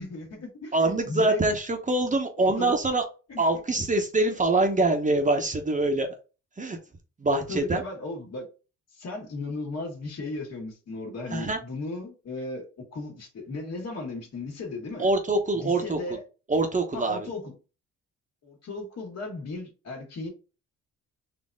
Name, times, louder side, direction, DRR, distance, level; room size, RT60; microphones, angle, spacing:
voice 1, 0.0-1.4 2.4-2.7 3.3-3.4 7.3-8.5 8.9-15.1 15.5-16.2 16.9-17.5 18.4-20.3, left 3 dB, 60° left, 2.0 m, -36 dB
voice 2, 0.7-3.0 3.4-6.1 6.6-6.8 7.2-7.8 11.3-11.6 15.0-16.0 16.5-17.3, right 2 dB, 25° right, 0.9 m, -24 dB
4.3 x 2.8 x 3.5 m
cardioid pair, 90°, 30 cm